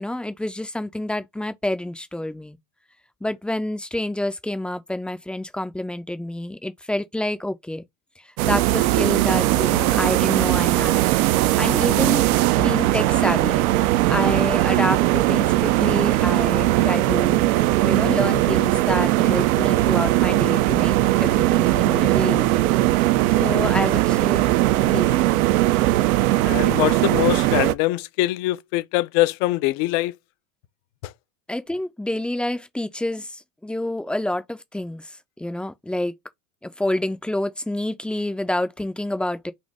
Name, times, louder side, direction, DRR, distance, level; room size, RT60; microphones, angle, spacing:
voice 1, 0.0-2.6 3.2-7.8 8.4-11.1 11.6-12.3 12.6-13.6 14.1-17.4 17.8-22.7 23.4-24.5 24.9-25.5 31.5-36.1 36.6-39.5, left 1 dB, ahead, 0.4 m, -28 dB
sound 1, 8.4-27.7, right 16 dB, 75° right, 0.6 m, -19 dB
voice 2, 26.4-30.1 31.0-31.1, left 18 dB, 55° left, 0.6 m, -23 dB
4.3 x 2.6 x 4.5 m
hypercardioid pair, 105°, 43 cm